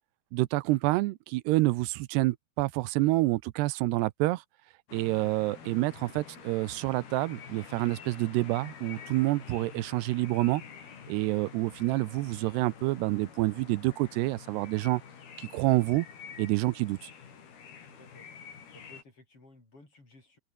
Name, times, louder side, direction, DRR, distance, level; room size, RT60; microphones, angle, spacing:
voice 1, 0.3-4.4 4.9-10.6 11.1-15.0 15.4-16.1 16.4-17.1, right 20 dB, 85° right, 2.8 m, -28 dB
sound 1, 4.9-19.0, left 7 dB, 70° left, 5.8 m, -48 dB
voice 2, 17.8-18.3 18.7-20.4, left 2 dB, 30° left, 8.8 m, -56 dB
omnidirectional pair, 4.7 m